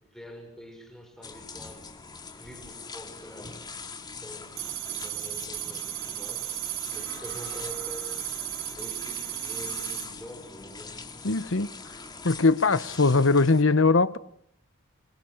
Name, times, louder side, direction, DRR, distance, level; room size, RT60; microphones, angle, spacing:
voice 1, 0.1-1.9 2.3-3.6 4.2-6.5 6.9-8.2 8.8-11.0, equal, ahead, 6.1 m, -45 dB
sound 1, 1.2-13.6, left 4 dB, 20° left, 2.7 m, -43 dB
sound 2, 4.6-10.1, right 15 dB, 80° right, 1.1 m, -35 dB
sound 3, 6.9-12.4, right 2 dB, 55° right, 5.8 m, -51 dB
voice 2, 11.2-11.7 12.2-14.2, left 3 dB, 70° left, 1.1 m, -21 dB
27.5 x 25.0 x 6.5 m
head